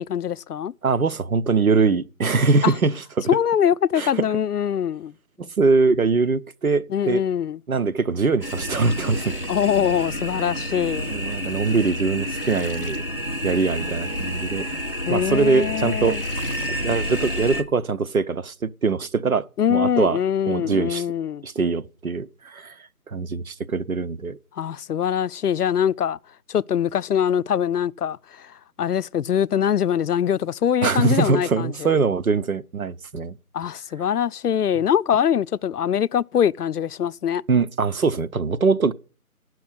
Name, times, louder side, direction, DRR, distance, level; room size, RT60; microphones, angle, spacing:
voice 1, 0.0-0.7 2.6-2.7 3.3-5.1 6.9-7.6 9.5-11.1 15.0-16.2 19.6-21.4 24.5-26.2 26.5-32.0 33.5-37.4, left 9 dB, 90° left, 0.6 m, -23 dB
voice 2, 0.8-3.3 4.0-4.2 5.4-7.2 7.7-9.4 11.1-13.0 13.4-14.7 15.1-16.2 16.8-20.2 20.5-21.0 21.4-22.7 23.1-24.4 30.8-33.3 37.5-38.9, right 4 dB, 70° right, 0.7 m, -22 dB
sound 1, 8.4-17.6, equal, 40° left, 0.7 m, -29 dB
9.6 x 6.2 x 8.7 m
figure-of-eight pair, 180°, 45 cm